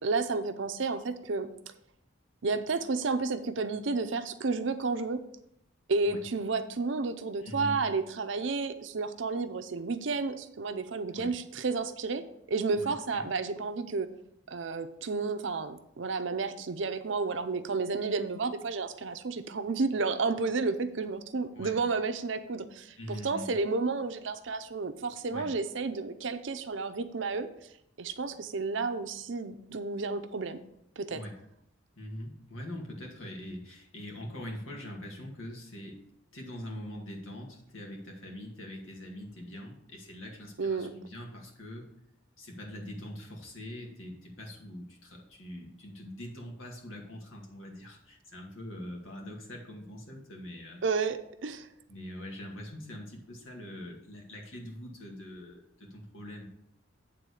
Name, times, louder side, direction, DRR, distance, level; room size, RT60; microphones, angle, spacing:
voice 1, 0.0-1.5 2.4-5.2 5.9-14.1 14.5-27.5 28.0-30.6 31.0-31.2 40.6-40.9 50.8-51.7, right 4 dB, 70° right, 9 dB, 0.6 m, -31 dB
voice 2, 7.4-7.8 11.1-11.3 12.7-13.3 21.5-21.7 23.0-23.6 25.3-25.5 31.1-31.3 32.0-36.0 36.3-41.9 42.4-50.8 51.9-56.5, equal, 90° left, 0 dB, 2.1 m, -43 dB
9.1 x 3.8 x 6.3 m, 0.75 s
head